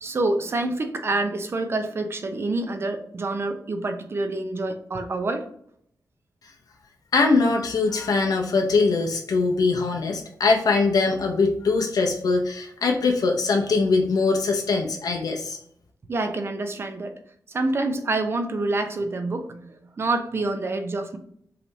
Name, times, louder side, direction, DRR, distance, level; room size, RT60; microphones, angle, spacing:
voice 1, 0.0-5.5 16.1-17.1 17.5-21.2, right 2 dB, 35° right, 7 dB, 0.6 m, -27 dB
voice 2, 7.1-15.6, left 3 dB, 70° left, 2 dB, 0.7 m, -22 dB
5.6 x 3.3 x 2.7 m, 0.68 s
wide cardioid pair, 160°, 7 cm